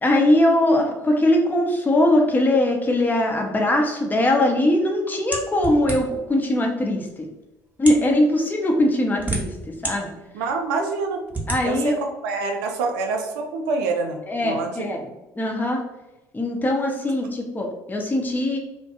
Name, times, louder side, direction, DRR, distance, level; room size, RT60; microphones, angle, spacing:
voice 1, 0.0-7.3 7.8-10.1 11.5-12.0 14.3-15.1 15.4-15.8 16.3-18.6, left 1 dB, 20° left, 1 dB, 0.6 m, -21 dB
sound 1, 5.3-6.3 7.1-7.2 7.7-8.1 8.9-9.9 10.5-10.6 11.3-11.6, right 2 dB, 20° right, 0.7 m, -28 dB
voice 2, 10.3-11.2 11.6-14.7 17.1-17.2, right 3 dB, 75° right, 3 dB, 0.4 m, -26 dB
2.2 x 2.1 x 2.8 m, 0.96 s
hypercardioid pair, 60°, 9 cm